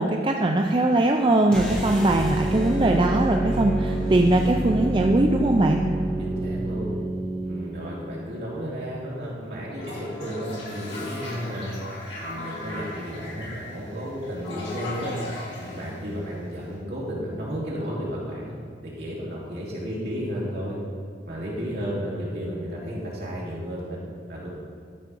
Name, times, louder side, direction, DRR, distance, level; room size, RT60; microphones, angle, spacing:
voice 1, 0.0-5.8, right 2 dB, 25° right, 2 dB, 0.4 m, -21 dB
sound 1, 1.5-7.7, right 1 dB, 5° left, 1.2 m, -27 dB
voice 2, 3.8-4.3 6.2-6.9 7.4-11.7 12.2-15.1 15.6-18.6 18.8-20.8 21.3-24.0 24.3-24.5, equal, 60° right, -6 dB, 2.7 m, -33 dB
Toilet flush, 9.7-16.7, left 2 dB, 75° left, 2.5 m, -37 dB
12.5 x 4.8 x 5.4 m, 2.1 s
head